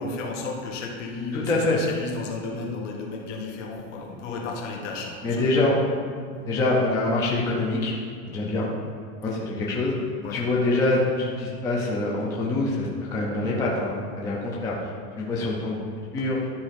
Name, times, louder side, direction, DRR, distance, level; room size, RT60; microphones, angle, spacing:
voice 1, 0.0-5.8 10.2-10.5, left 3 dB, 55° left, -1 dB, 1.9 m, -34 dB
voice 2, 1.3-1.8 5.2-5.7 6.5-7.9 8.3-8.7 9.2-10.0 10.3-14.9 15.2-15.8 16.1-16.4, left 2 dB, 10° left, -4 dB, 0.5 m, -25 dB
12.0 x 4.9 x 5.1 m, 2.1 s
supercardioid pair, 165°, 43 cm